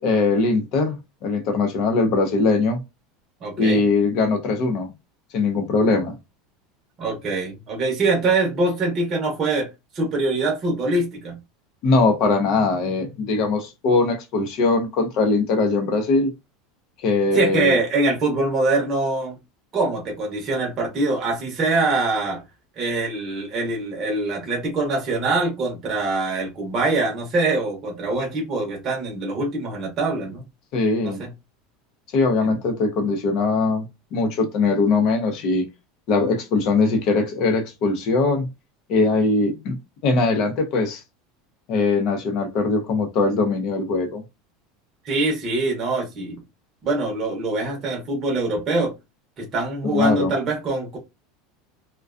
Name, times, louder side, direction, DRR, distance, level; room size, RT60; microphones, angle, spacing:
voice 1, 0.0-2.8 3.6-4.9 5.3-6.2 11.8-16.3 17.0-17.8 30.7-31.2 32.1-35.6 36.1-38.5 38.9-41.0 41.7-44.2 49.9-50.3, left 3 dB, 45° left, 0.6 m, -21 dB
voice 2, 3.4-3.8 7.0-9.7 9.9-11.4 17.3-19.4 19.7-22.4 22.8-30.4 31.0-31.3 32.4-32.6 45.0-46.4 46.8-48.9 49.4-51.0, right 3 dB, 25° right, 0.8 m, -24 dB
2.4 x 2.2 x 2.4 m
supercardioid pair, 165°, 0 cm